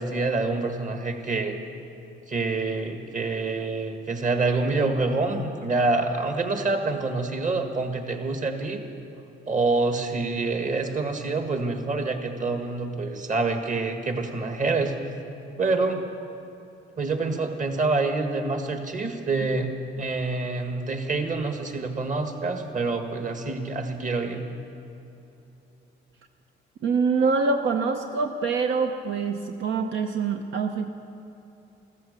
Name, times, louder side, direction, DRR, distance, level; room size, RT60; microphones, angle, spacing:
voice 1, 0.0-1.6 2.3-8.8 9.5-15.0 15.6-16.0 17.0-19.7 20.0-24.4, right 3 dB, 40° right, 5 dB, 1.8 m, -26 dB
voice 2, 26.8-30.9, right 4 dB, 70° right, 5 dB, 0.8 m, -25 dB
14.5 x 14.0 x 6.8 m, 2.9 s
cardioid pair, 90°, 20 cm